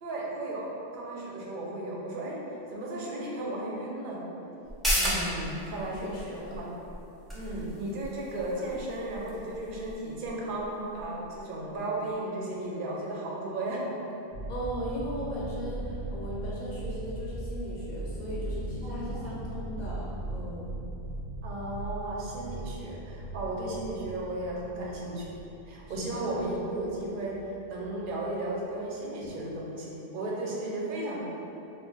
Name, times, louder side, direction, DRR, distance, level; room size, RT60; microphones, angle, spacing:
voice 1, 0.0-2.4 2.7-4.2 5.0-6.1 6.5-6.7 7.3-13.8 18.8-19.4 21.4-25.3 25.7-27.4 27.7-31.2, right 1 dB, 60° right, -3 dB, 0.6 m, -35 dB
sound 1, 4.6-11.8 12.1-12.2, equal, ahead, 0.3 m, -35 dB
voice 2, 5.0-5.6 5.9-6.6 14.5-20.8 25.9-26.3, equal, 55° left, -6 dB, 0.5 m, -38 dB
sound 2, 14.3-28.3, right 1 dB, 85° right, 0.9 m, -39 dB
2.4 x 2.1 x 3.7 m, 2.9 s
omnidirectional pair, 1.1 m